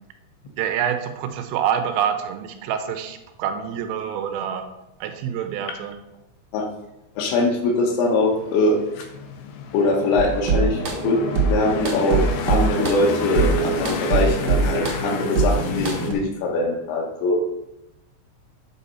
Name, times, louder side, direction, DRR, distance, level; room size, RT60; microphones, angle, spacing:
voice 1, 0.6-4.7 5.0-6.0, right 8 dB, 90° right, 7 dB, 3.4 m, -26 dB
voice 2, 7.2-9.0 9.7-12.2 12.5-17.4, left 2 dB, 75° left, 1 dB, 3.1 m, -22 dB
sound 1, 7.7-16.1, left 5 dB, 90° left, 2.2 m, -32 dB
sound 2, 10.2-16.1, right 5 dB, 70° right, 1.8 m, -23 dB
9.1 x 4.2 x 5.5 m, 0.91 s
omnidirectional pair, 5.7 m